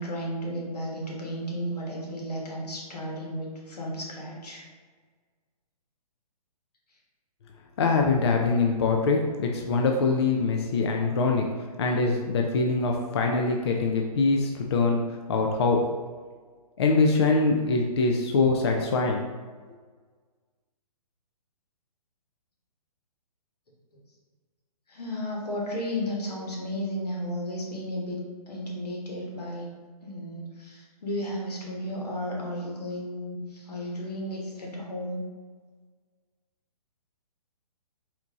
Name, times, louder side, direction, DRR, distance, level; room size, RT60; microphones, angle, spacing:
voice 1, 0.0-4.6 24.9-28.2 28.5-29.7 30.0-35.2, equal, 90° left, -2 dB, 1.4 m, -33 dB
voice 2, 7.8-15.8 16.8-19.2, left 3 dB, 45° left, 1 dB, 0.4 m, -24 dB
4.3 x 2.6 x 3.6 m, 1.5 s
hypercardioid pair, 160°, 20 cm